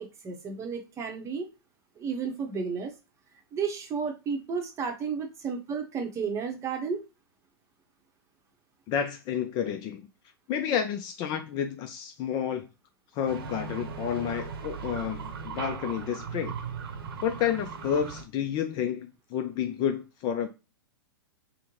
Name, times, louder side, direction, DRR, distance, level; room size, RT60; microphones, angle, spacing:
voice 1, 0.0-1.5 2.0-2.9 3.5-7.0, right 5 dB, 20° right, 0.8 m, -32 dB
voice 2, 8.9-10.1 10.5-12.7 13.1-16.5 17.2-20.5, left 8 dB, 35° left, 0.4 m, -30 dB
sound 1, 13.3-18.2, right 6 dB, 65° right, 0.8 m, -38 dB
3.5 x 2.1 x 2.9 m
hypercardioid pair, 110°, 13 cm